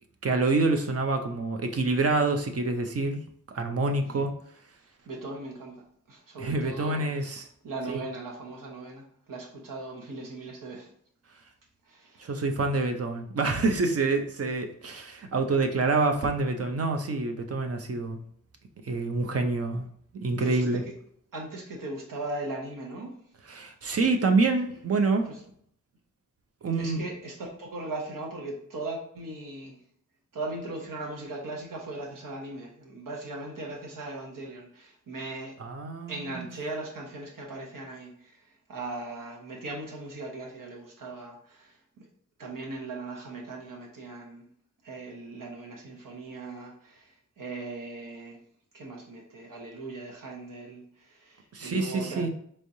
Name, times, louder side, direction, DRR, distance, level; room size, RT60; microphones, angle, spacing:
voice 1, 0.2-3.2 3.5-4.3 6.4-7.5 7.9-8.0 12.2-18.2 18.8-19.9 20.1-20.8 23.5-25.2 26.6-27.0 35.6-36.5 51.5-52.3, right 3 dB, 45° right, 5 dB, 0.6 m, -27 dB
voice 2, 5.1-7.1 7.6-10.9 11.9-12.3 20.3-20.8 21.3-23.2 25.2-25.4 26.8-29.8 30.3-35.5 36.1-41.7 42.4-44.5 44.8-48.4 48.7-52.3, right 2 dB, 80° right, 0 dB, 1.1 m, -39 dB
4.4 x 3.3 x 2.7 m, 0.64 s
wide cardioid pair, 115°, 32 cm